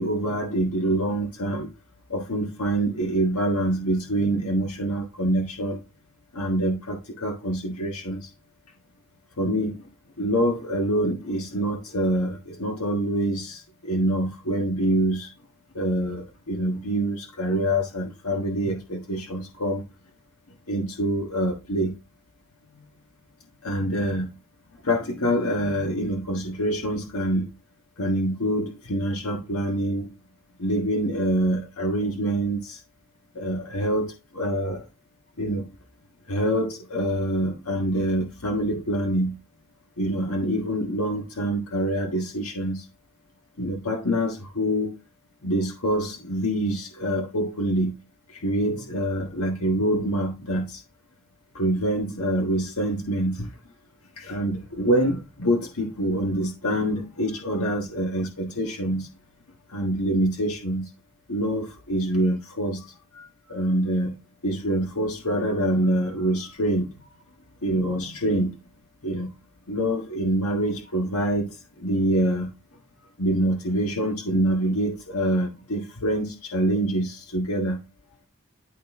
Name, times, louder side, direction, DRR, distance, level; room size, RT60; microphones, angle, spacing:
voice 1, 0.0-1.7 2.1-5.8 6.3-8.3 9.4-9.9 10.2-15.3 15.7-19.9 20.7-21.9 22.7-22.9 23.6-24.3 24.8-27.5 28.0-30.1 30.6-32.8 33.3-34.9 35.4-35.7 36.3-39.3 40.0-42.9 43.6-45.0 45.4-47.9 48.3-50.8 51.5-53.5 54.2-59.1 59.7-60.9 61.3-62.8 63.1-64.1 64.4-67.1 67.6-68.5 69.0-69.3 69.7-72.5 73.2-77.8, right 1 dB, 75° left, 1.5 m, -25 dB
12.0 x 4.1 x 3.6 m
head